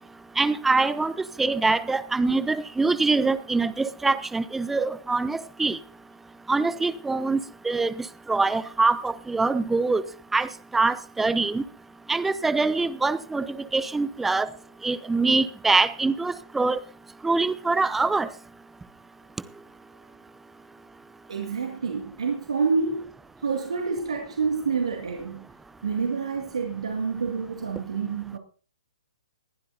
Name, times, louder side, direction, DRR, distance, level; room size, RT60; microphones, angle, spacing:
voice 1, 0.4-1.1 1.4-5.8 6.5-7.4 7.6-10.0 10.3-11.6 12.1-14.5 14.8-16.8 17.2-18.3, right 3 dB, 5° right, 0.7 m, -24 dB
voice 2, 21.3-23.1 23.4-25.4 25.8-28.4, right 5 dB, 70° right, 2.3 m, -28 dB
20.5 x 11.5 x 2.7 m
figure-of-eight pair, 125°, 4 cm